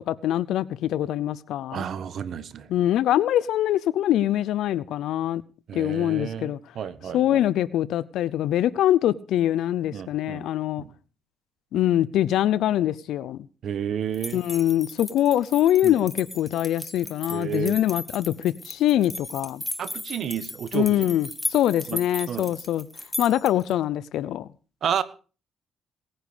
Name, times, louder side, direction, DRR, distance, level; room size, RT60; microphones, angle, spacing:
voice 1, 0.1-1.9 2.7-5.4 5.7-6.6 7.1-10.8 11.7-13.5 14.3-19.6 20.7-22.9 23.2-24.5, left 12 dB, 80° left, 0.6 m, -23 dB
voice 2, 1.7-2.7 5.7-7.4 9.9-10.5 10.8-10.9 13.6-14.4 15.8-16.0 17.3-17.8 19.8-21.1 21.9-22.0 22.3-22.5 24.8-25.0, right 8 dB, 60° right, 1.4 m, -31 dB
sound 1, 14.1-23.7, left 1 dB, 10° left, 1.7 m, -36 dB
19.0 x 10.0 x 5.1 m
cardioid pair, 90°, 0 cm